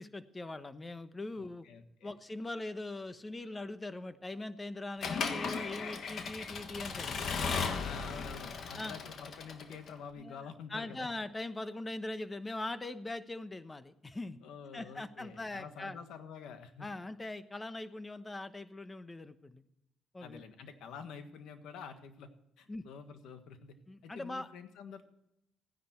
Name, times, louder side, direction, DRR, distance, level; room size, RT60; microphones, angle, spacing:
voice 1, 0.0-1.7 2.0-7.2 7.6-7.8 8.8-9.0 10.2-14.4 14.7-16.0 16.8-19.6 20.1-20.4 22.7-22.9 23.9-24.5, left 2 dB, 20° left, 12 dB, 1.0 m, -41 dB
voice 2, 1.3-2.1 7.5-11.1 14.4-16.9 20.2-22.3 22.6-23.7 24.0-25.0, left 6 dB, 85° left, 8 dB, 1.5 m, -48 dB
Accelerating revving vroom / Mechanisms, 5.0-9.9, left 5 dB, 60° left, 1.5 m, -36 dB
15.5 x 10.0 x 4.5 m, 0.81 s
cardioid pair, 90°, 0 cm